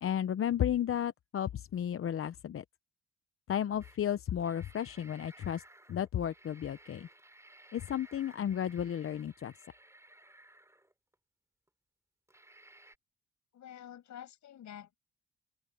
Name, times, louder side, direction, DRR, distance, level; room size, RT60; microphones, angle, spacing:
voice 1, 0.0-2.6 3.5-5.6 5.9-7.1 7.7-9.5, left 10 dB, 45° left, 0.7 m, -33 dB
sound 1, 3.8-4.0 4.3-11.1 11.7-11.8 12.3-13.0, right 1 dB, 10° right, 4.6 m, -58 dB
voice 2, 13.5-15.0, left 10 dB, 70° left, 6.9 m, -48 dB
open air
cardioid pair, 90°, 30 cm